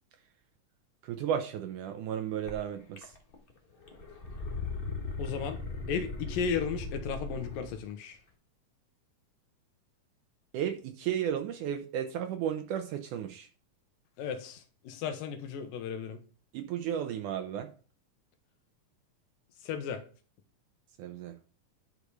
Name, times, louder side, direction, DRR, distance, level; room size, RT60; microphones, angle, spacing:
voice 1, 1.0-3.1 10.5-13.5 16.5-17.7 21.0-21.4, right 9 dB, 75° right, 2.2 m, -34 dB
sound 1, 2.5-2.6 3.0-3.5 3.8-7.8, left 3 dB, 60° left, 0.5 m, -38 dB
voice 2, 5.2-5.6 5.9-8.2 14.2-16.2 19.6-20.0, left 7 dB, 85° left, 2.8 m, -35 dB
10.5 x 5.2 x 4.8 m
omnidirectional pair, 3.9 m